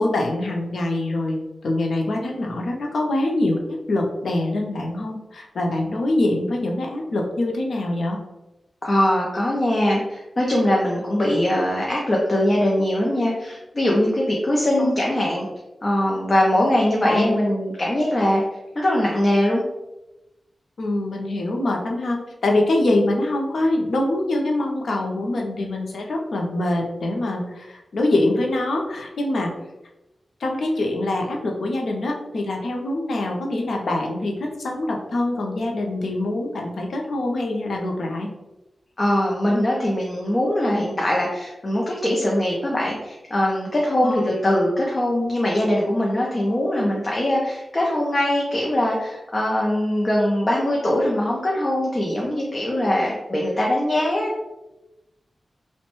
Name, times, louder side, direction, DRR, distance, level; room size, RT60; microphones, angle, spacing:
voice 1, 0.0-8.2 14.8-14.9 16.6-16.7 17.0-17.4 20.8-29.5 30.4-38.3 44.0-44.3, left 1 dB, 90° left, 1 dB, 0.5 m, -24 dB
voice 2, 8.8-15.5 15.8-18.4 18.7-19.6 39.0-54.3, left 1 dB, 35° left, -3 dB, 0.5 m, -21 dB
3.0 x 2.1 x 3.0 m, 0.97 s
wide cardioid pair, 105°, 0 cm